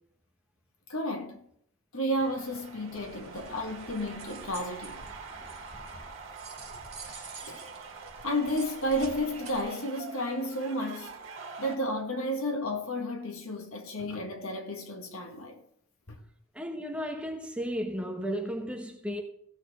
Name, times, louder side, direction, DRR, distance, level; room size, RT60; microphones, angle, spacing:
voice 1, 0.9-1.4 1.9-5.0 7.5-7.6 8.2-11.2 11.6-15.6 16.1-16.2, equal, 70° left, 1.7 m, -32 dB
sound 1, 2.2-11.8, right 4 dB, 60° right, 1.9 m, -45 dB
sound 2, 2.9-9.6, right 3 dB, 30° right, 2.8 m, -48 dB
voice 2, 16.5-19.2, equal, 5° right, 1.0 m, -34 dB
16.5 x 6.6 x 3.6 m
head